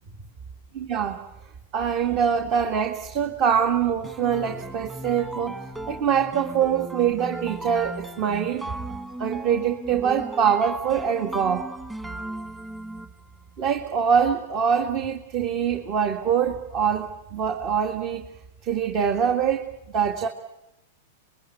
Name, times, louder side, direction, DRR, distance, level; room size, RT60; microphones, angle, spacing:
voice 1, 0.8-1.2 1.7-5.6 5.9-8.7 9.2-11.7 13.6-18.3 18.6-20.3, right 7 dB, 40° right, 6 dB, 2.0 m, -24 dB
sound 1, 4.0-13.2, right 1 dB, 10° right, 1.8 m, -36 dB
26.5 x 21.5 x 9.3 m, 0.92 s
hypercardioid pair, 135°, 0 cm